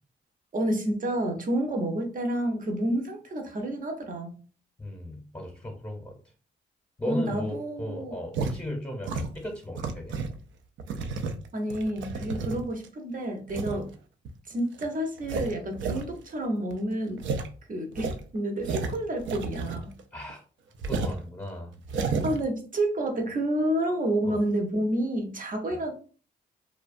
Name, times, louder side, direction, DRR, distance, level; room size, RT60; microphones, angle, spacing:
voice 1, 0.5-4.4 7.0-8.2 11.5-13.9 14.5-17.3 17.7-19.9 22.0-25.9, right 1 dB, 45° right, 0.8 m, -29 dB
voice 2, 4.8-6.1 7.0-10.2 13.7-13.9 20.1-20.4 20.9-21.7 24.2-24.4, left 1 dB, 15° left, 0.8 m, -36 dB
sound 1, 8.3-8.6 9.0-10.4 10.8-12.9 13.5-13.8 14.3-14.4 14.7-14.9 15.2-16.0 16.3-16.4 16.7-16.8 17.2-17.5 17.9-20.0 20.3-20.4 20.8-21.2 21.8-22.4, right 4 dB, 70° right, 0.4 m, -31 dB
2.3 x 2.2 x 2.5 m
supercardioid pair, 50°, 20 cm